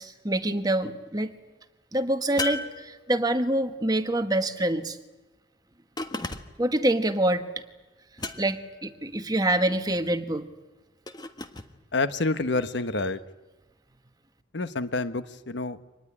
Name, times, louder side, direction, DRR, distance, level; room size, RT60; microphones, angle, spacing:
voice 1, 0.0-1.4 1.9-5.0 6.6-7.4 8.4-10.5, right 1 dB, 20° right, 8 dB, 1.4 m, -26 dB
sound 1, 2.4-3.5 6.0-6.7 8.2-8.8 11.1-11.7, left 3 dB, 25° left, 1.4 m, -35 dB
voice 2, 11.9-13.2 14.5-15.8, left 3 dB, 80° left, 12 dB, 1.2 m, -28 dB
25.5 x 19.5 x 9.9 m, 1.1 s
head